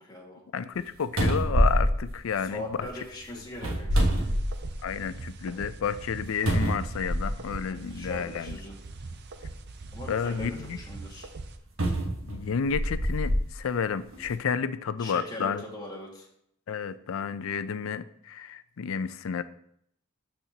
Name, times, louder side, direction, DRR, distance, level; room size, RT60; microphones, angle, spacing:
voice 1, 0.0-0.4 2.5-4.3 6.5-6.6 7.7-8.7 9.9-11.3 15.0-16.3, left 1 dB, 20° left, -3 dB, 1.8 m, -41 dB
voice 2, 0.5-2.6 3.6-3.8 4.8-8.6 10.1-10.8 12.2-15.6 16.7-19.4, left 6 dB, 80° left, 14 dB, 0.4 m, -31 dB
sound 1, 0.8-0.9 1.2-2.9 3.5-5.0 5.4-5.5 6.5-7.6 8.5-8.6 11.8-13.4 14.1-14.3, equal, 85° right, 1.2 m, -26 dB
sound 2, 3.9-11.6, right 3 dB, 55° right, 0.6 m, -42 dB
12.5 x 4.3 x 2.8 m, 0.71 s
head